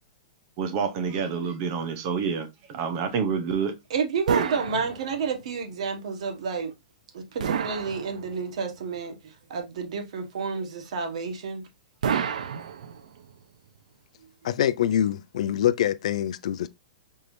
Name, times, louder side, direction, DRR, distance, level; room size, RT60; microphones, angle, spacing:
voice 1, 0.6-3.7, right 6 dB, 30° right, 0.7 m, -28 dB
voice 2, 3.9-6.7 7.1-11.6, right 5 dB, 60° right, 1.3 m, -30 dB
sound 1, 4.3-5.5 7.4-8.6 12.0-13.3, right 7 dB, 80° right, 0.6 m, -30 dB
voice 3, 14.4-16.7, left 11 dB, 60° left, 0.4 m, -24 dB
4.4 x 3.3 x 2.6 m
hypercardioid pair, 170°, 4 cm